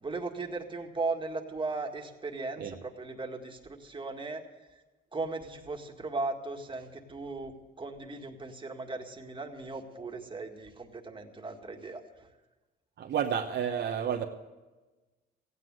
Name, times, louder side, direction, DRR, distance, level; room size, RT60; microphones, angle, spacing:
voice 1, 0.0-4.4 5.1-12.3, right 3 dB, 25° right, 2 dB, 1.9 m, -37 dB
voice 2, 13.0-14.3, right 8 dB, 60° right, 3 dB, 1.0 m, -30 dB
15.5 x 9.7 x 7.7 m, 1.2 s
cardioid pair, 90°, 20 cm